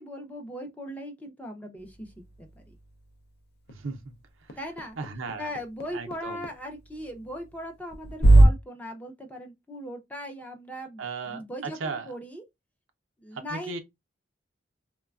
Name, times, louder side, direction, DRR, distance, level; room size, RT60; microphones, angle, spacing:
voice 1, 0.0-2.7 4.6-5.0 5.4-12.4 13.2-13.8, equal, 10° left, 0.5 m, -39 dB
sound 1, 1.8-8.5, right 1 dB, 55° left, 0.5 m, -25 dB
voice 2, 3.7-4.1 4.4-4.6 5.0-5.5 5.9-6.5 11.0-12.1 13.3-13.8, right 4 dB, 85° right, 0.6 m, -36 dB
3.1 x 2.2 x 2.3 m
head